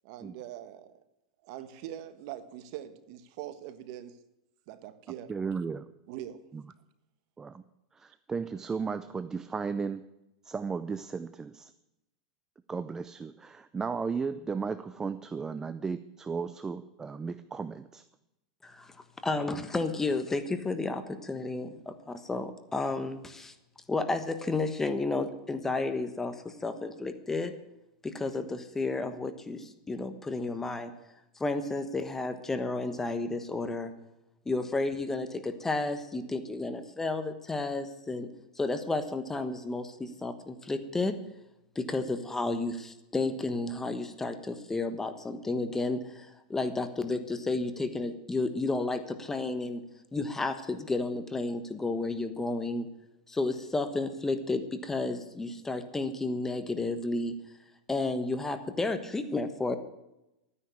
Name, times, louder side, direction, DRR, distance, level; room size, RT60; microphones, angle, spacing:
voice 1, 0.0-1.0 1.4-4.2 4.7-5.3 6.1-6.4, right 12 dB, 55° right, 12 dB, 1.4 m, -42 dB
voice 2, 5.3-5.9 6.5-6.6 7.4-7.6 7.9-10.1 10.4-11.7 12.7-18.0, right 5 dB, 15° right, 12 dB, 0.5 m, -35 dB
voice 3, 18.6-18.9 19.2-23.5 23.9-27.5 28.0-30.9 31.4-33.9 34.5-38.3 38.6-41.1 41.7-49.8 50.1-52.9 53.3-57.3 57.9-59.8, left 3 dB, 10° left, 9 dB, 1.2 m, -32 dB
13.0 x 9.9 x 8.4 m, 0.91 s
supercardioid pair, 145°, 4 cm